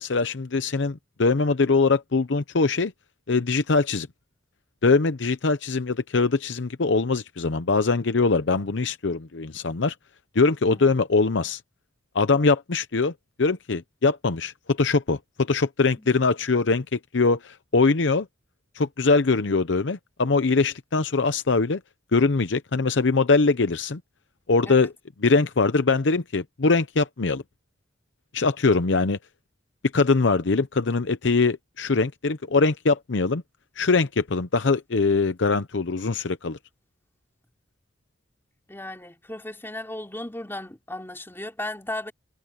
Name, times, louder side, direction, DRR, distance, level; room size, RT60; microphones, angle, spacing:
voice 1, 0.0-2.9 3.3-4.1 4.8-9.9 10.3-11.6 12.1-13.1 13.4-18.3 18.8-21.8 22.1-24.0 24.5-24.9 25.2-27.4 28.3-29.2 29.9-33.4 33.8-36.6, left 3 dB, 70° left, 0.8 m, -22 dB
voice 2, 38.7-42.1, left 1 dB, 10° left, 3.5 m, -36 dB
head